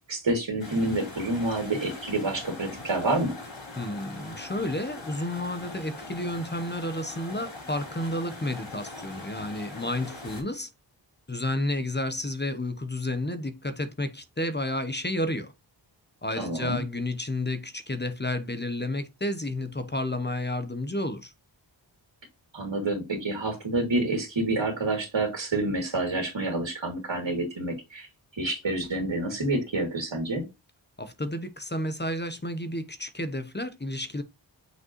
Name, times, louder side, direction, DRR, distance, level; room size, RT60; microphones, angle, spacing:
voice 1, 0.1-3.4 16.4-16.8 22.5-28.1 28.4-30.5, right 2 dB, 65° right, 2.3 m, -28 dB
sound 1, 0.6-10.4, left 2 dB, 65° left, 4.1 m, -42 dB
voice 2, 3.8-10.7 11.3-15.5 16.2-21.3 31.0-34.2, left 1 dB, 20° left, 0.8 m, -31 dB
6.3 x 5.1 x 3.0 m
wide cardioid pair, 45°, 48 cm